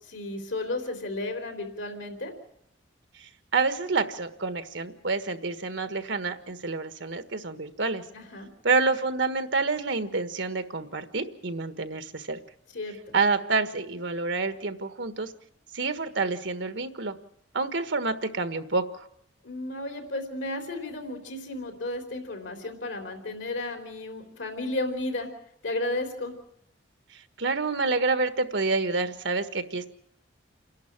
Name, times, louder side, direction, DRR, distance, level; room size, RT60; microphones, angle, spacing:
voice 1, 0.0-2.3 8.1-8.5 12.7-13.1 19.4-25.3 25.6-26.3, left 2 dB, 85° left, 5 dB, 3.7 m, -33 dB
voice 2, 3.1-8.0 8.6-12.4 13.1-15.3 15.7-17.2 17.5-19.1 27.1-29.9, right 3 dB, 75° right, 10 dB, 1.5 m, -28 dB
28.5 x 11.5 x 8.8 m, 0.73 s
head